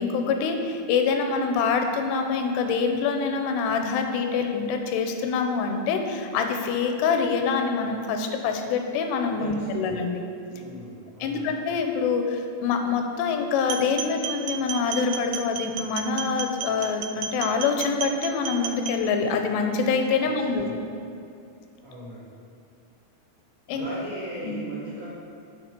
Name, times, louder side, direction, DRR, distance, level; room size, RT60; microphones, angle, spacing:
voice 1, 0.0-10.2 11.2-20.7 23.7-23.9 24.5-24.6, left 5 dB, 90° left, 5 dB, 2.8 m, -25 dB
voice 2, 9.4-9.9 10.5-11.5 20.2-20.8 21.8-22.3 23.7-25.1, right 1 dB, 65° right, -8 dB, 1.2 m, -38 dB
sound 1, 13.6-19.0, right 8 dB, 85° right, 2.5 m, -33 dB
7.3 x 5.5 x 5.8 m, 2.4 s
omnidirectional pair, 4.8 m